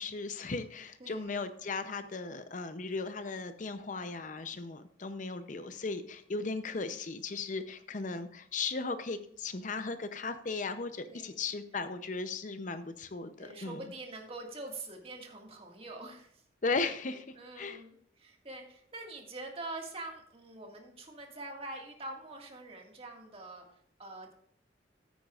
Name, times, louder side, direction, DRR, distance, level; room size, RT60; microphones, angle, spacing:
voice 1, 0.0-13.8 16.6-17.8, left 4 dB, 45° left, 10 dB, 0.6 m, -37 dB
voice 2, 1.0-1.4 11.1-11.4 13.4-16.4 17.1-24.3, right 2 dB, 35° right, 1 dB, 1.9 m, -45 dB
14.5 x 8.9 x 2.4 m, 0.66 s
head